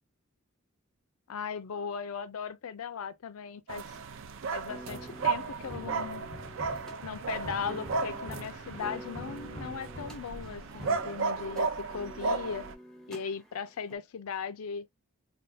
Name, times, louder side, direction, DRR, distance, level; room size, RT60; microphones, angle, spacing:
voice 1, 1.3-3.9 4.5-6.3 7.0-12.6 13.1-14.9, left 6 dB, 90° left, 0.5 m, -38 dB
sound 1, 3.7-12.7, right 4 dB, 65° right, 0.4 m, -34 dB
sound 2, 4.7-14.0, equal, 5° left, 0.6 m, -49 dB
sound 3, 4.9-11.0, right 1 dB, 45° right, 1.0 m, -46 dB
3.4 x 2.3 x 2.7 m
head